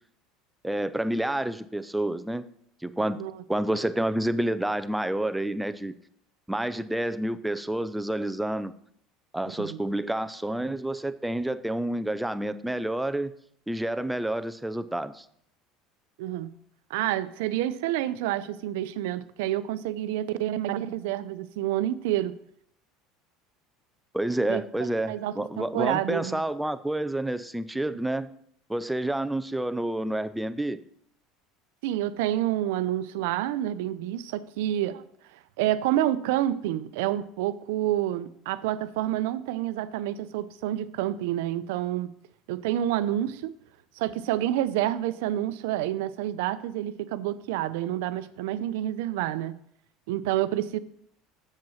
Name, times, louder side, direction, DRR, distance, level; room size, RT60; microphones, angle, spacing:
voice 1, 0.6-2.5 2.8-3.2 3.5-5.9 6.5-8.7 9.3-13.3 13.7-15.3 24.1-28.3 28.7-30.8, right 1 dB, 5° right, 12 dB, 0.5 m, -29 dB
voice 2, 16.2-16.5 16.9-22.4 24.5-24.6 25.1-26.4 31.8-35.0 35.3-42.1 42.5-43.5 44.0-49.6 50.1-50.8, right 13 dB, 85° right, 13 dB, 0.6 m, -28 dB
7.7 x 7.5 x 5.6 m, 0.70 s
cardioid pair, 135°, 0 cm